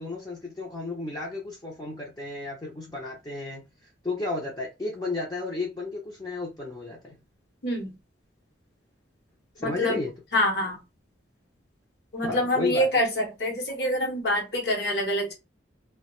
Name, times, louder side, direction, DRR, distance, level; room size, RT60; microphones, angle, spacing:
voice 1, 0.0-3.7 4.0-7.2 9.6-10.1 12.2-12.9, left 3 dB, 20° left, 0.5 m, -33 dB
voice 2, 9.6-10.0 10.3-10.8 12.1-15.3, left 1 dB, 60° left, 0.8 m, -26 dB
2.2 x 2.1 x 2.9 m
head